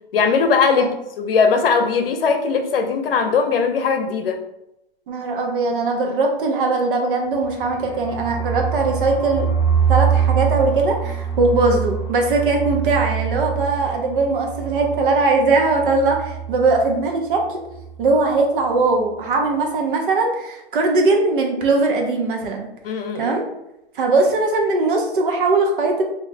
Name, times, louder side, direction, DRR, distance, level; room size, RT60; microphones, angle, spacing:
voice 1, 0.1-0.9 1.2-4.4 22.8-23.4, left 5 dB, 65° left, 6 dB, 0.7 m, -19 dB
voice 2, 5.1-9.5 9.9-17.6 18.0-22.7 23.2-23.4 23.9-26.0, right 3 dB, 55° right, 2 dB, 1.0 m, -20 dB
sound 1, 7.3-17.0 17.3-17.4 17.7-18.1, right 8 dB, 10° left, 0.8 m, -24 dB
4.9 x 2.8 x 2.7 m, 0.88 s
hypercardioid pair, 135°, 31 cm